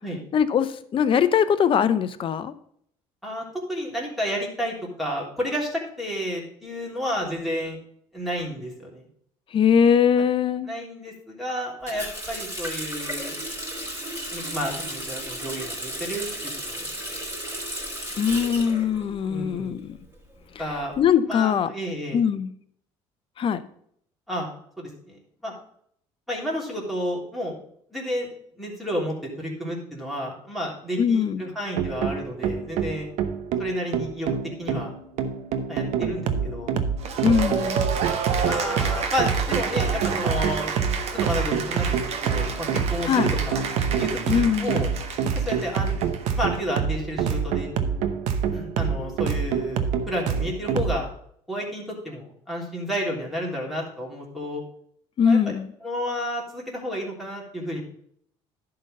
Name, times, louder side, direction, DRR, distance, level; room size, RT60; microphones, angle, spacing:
voice 1, 0.3-2.5 9.5-10.7 18.2-20.0 21.0-21.7 22.1-22.5 23.4-23.6 31.0-31.4 37.2-37.9 43.1-43.3 44.3-44.8 55.2-55.7, left 7 dB, 45° left, 14 dB, 0.7 m, -21 dB
voice 2, 3.2-7.8 8.1-9.1 10.6-13.4 14.3-16.9 19.3-19.8 20.6-20.9 21.3-22.2 24.3-24.5 24.8-25.5 26.3-27.5 27.9-28.3 28.6-33.1 33.6-34.3 34.6-34.9 35.7-36.7 38.4-40.7 41.1-43.6 44.0-44.9 45.3-45.9 46.3-47.7 48.5-51.1 51.5-54.6 55.2-55.5 55.8-57.8, equal, ahead, -3 dB, 3.3 m, -31 dB
Water tap faucet, 11.9-19.6 19.9-21.0, right 1 dB, 20° right, 4.3 m, -34 dB
sound 1, 31.8-51.0, right 7 dB, 70° right, 0.9 m, -26 dB
Cheering / Applause, 37.0-46.6, right 6 dB, 55° right, 1.3 m, -31 dB
11.0 x 3.9 x 6.5 m, 0.67 s
supercardioid pair, 90°, 13 cm